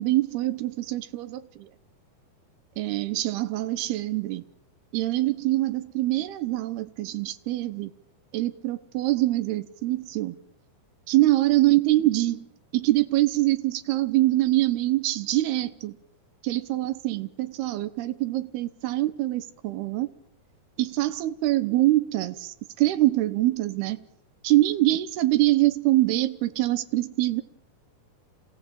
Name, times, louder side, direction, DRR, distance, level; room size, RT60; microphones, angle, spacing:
voice 1, 0.0-1.7 2.8-4.4 4.9-7.9 8.3-10.4 11.1-12.5 12.7-16.0 16.4-20.1 20.8-24.0 24.4-27.4, right 16 dB, 80° right, 3.1 m, -24 dB
27.0 x 17.0 x 8.8 m
omnidirectional pair, 4.5 m